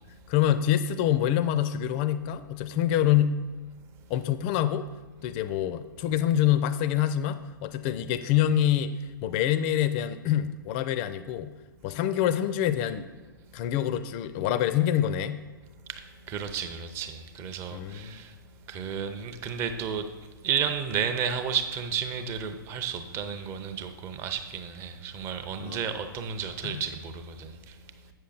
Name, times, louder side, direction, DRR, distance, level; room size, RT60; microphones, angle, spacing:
voice 1, 0.3-3.4 4.1-4.9 5.2-8.9 9.2-11.5 11.8-13.1 13.5-15.4 17.7-18.2 25.6-25.8 26.6-26.8, left 11 dB, 30° left, 0.4 m, -26 dB
voice 2, 15.9-18.3 18.7-20.1 20.4-27.8, right 7 dB, 20° right, 0.6 m, -32 dB
8.0 x 6.3 x 4.0 m
figure-of-eight pair, 115°, 12 cm